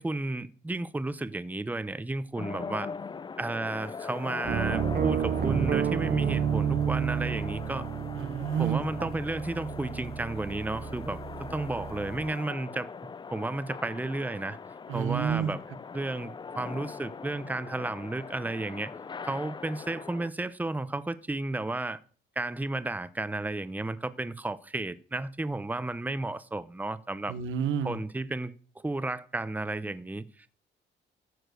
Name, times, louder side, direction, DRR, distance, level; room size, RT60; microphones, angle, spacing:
voice 1, 0.0-2.9 3.4-7.9 8.6-12.9 13.3-14.6 14.9-15.6 15.9-18.9 19.2-22.0 22.4-27.3 27.8-28.5 28.8-30.5, right 2 dB, 10° right, 0.7 m, -33 dB
sound 1, 2.4-20.3, left 5 dB, 25° left, 0.4 m, -41 dB
sound 2, 4.4-12.3, right 8 dB, 50° right, 0.6 m, -31 dB
voice 2, 8.2-9.1 14.9-15.6 27.3-28.0, right 8 dB, 80° right, 0.9 m, -29 dB
14.0 x 4.7 x 6.5 m
cardioid pair, 90°, 20 cm